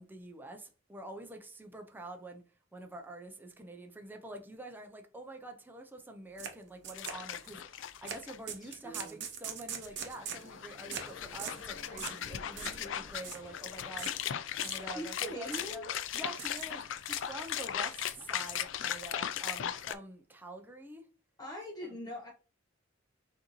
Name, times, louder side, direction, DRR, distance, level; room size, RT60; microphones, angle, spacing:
voice 1, 0.0-2.4 2.7-14.3 14.6-21.1, right 1 dB, 10° right, 0.5 m, -47 dB
sound 1, 6.4-6.5 6.8-7.5 8.1-8.2 8.5-10.5 10.9-11.1 11.4-11.6 12.0-12.2 12.6-12.8 13.1-13.4 14.0-14.2 14.6-15.1 15.5-15.7 16.3-16.7 17.0-17.7 18.1-19.0, right 7 dB, 65° right, 0.8 m, -42 dB
sound 2, 6.9-8.4 8.7-8.8 9.9-19.9, left 10 dB, 75° left, 0.4 m, -38 dB
voice 2, 8.6-9.2 14.9-15.9 21.4-22.3, equal, 20° left, 0.7 m, -42 dB
sound 3, 9.8-14.9, left 2 dB, 90° left, 1.1 m, -54 dB
6.1 x 2.7 x 3.0 m
head